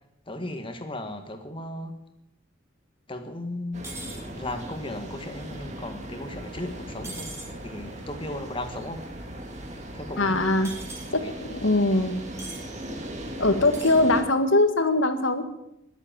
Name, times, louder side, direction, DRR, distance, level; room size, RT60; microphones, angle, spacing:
voice 1, 0.3-2.0 3.1-7.3 7.6-9.0 9.9-10.4 11.1-11.3, left 1 dB, 25° left, 6 dB, 1.7 m, -36 dB
sound 1, 3.7-14.2, right 1 dB, 35° right, 2.2 m, -38 dB
sound 2, 3.8-4.2 7.0-7.5 10.6-11.1 12.4-12.6 13.6-14.0, right 3 dB, 15° right, 2.4 m, -39 dB
voice 2, 10.2-10.7 11.1-12.1 13.4-15.5, left 2 dB, 70° left, 8 dB, 1.8 m, -22 dB
20.5 x 8.1 x 7.6 m, 0.82 s
head